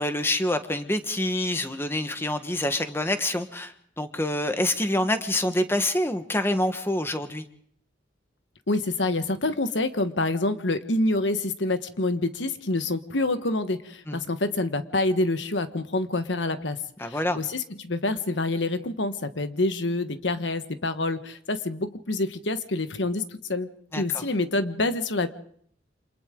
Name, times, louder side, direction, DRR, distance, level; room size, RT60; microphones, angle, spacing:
voice 1, 0.0-7.4 14.1-14.2 17.0-17.4 23.9-24.2, left 1 dB, 15° left, 8 dB, 1.3 m, -26 dB
voice 2, 8.7-23.7 23.9-25.3, left 2 dB, 80° left, 10 dB, 1.3 m, -27 dB
28.5 x 26.5 x 3.8 m, 0.62 s
head